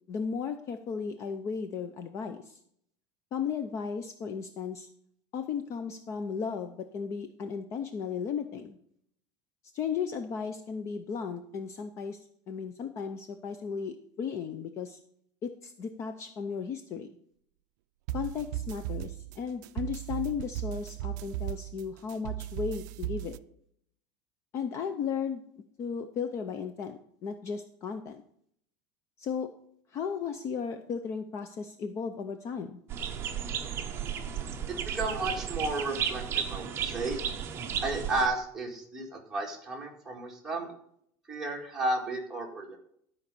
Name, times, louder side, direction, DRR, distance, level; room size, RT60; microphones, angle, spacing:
voice 1, 0.1-2.6 3.3-4.9 5.3-8.8 9.7-15.0 15.4-17.1 18.1-23.4 24.5-25.5 25.8-28.2 29.2-29.5 29.9-32.8, left 6 dB, 30° left, 8 dB, 0.5 m, -35 dB
sound 1, 18.1-23.4, right 14 dB, 75° right, 0.4 m, -36 dB
sound 2, 32.9-38.3, right 8 dB, 25° right, 0.8 m, -34 dB
voice 2, 34.9-37.2 37.8-40.7 41.3-42.8, right 2 dB, 5° right, -3 dB, 2.0 m, -33 dB
12.5 x 5.2 x 6.8 m, 0.68 s
cardioid pair, 180°, 10 cm